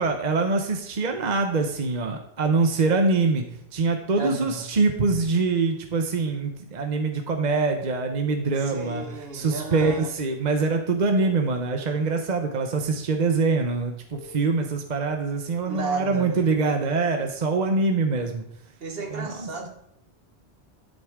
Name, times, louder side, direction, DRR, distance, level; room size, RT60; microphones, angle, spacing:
voice 1, 0.0-3.4 3.7-9.0 9.3-18.4 19.1-19.5, right 3 dB, 45° right, 4 dB, 1.0 m, -24 dB
voice 2, 4.2-4.7 8.6-10.2 15.6-16.5 18.8-19.7, right 3 dB, 70° right, 3 dB, 1.7 m, -33 dB
sound 1, 8.1-9.1 11.1-12.1 14.1-14.5, left 6 dB, 90° left, 1.2 m, -44 dB
12.0 x 7.9 x 3.6 m, 0.74 s
omnidirectional pair, 1.0 m